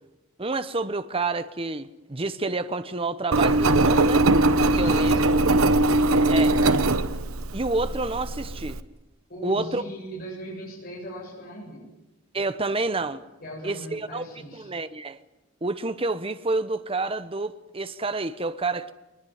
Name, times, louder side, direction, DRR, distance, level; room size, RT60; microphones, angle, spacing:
voice 1, 0.4-4.3 4.8-5.2 6.3-6.6 7.5-8.8 9.4-9.8 12.3-13.2 13.6-14.2 14.5-15.2 15.6-18.9, right 3 dB, 25° right, 0.9 m, -28 dB
Engine, 3.3-8.8, right 2 dB, 80° right, 1.1 m, -21 dB
voice 2, 4.7-5.5 9.3-11.8 13.4-14.7, equal, 45° left, 7.8 m, -38 dB
22.5 x 21.0 x 9.4 m
head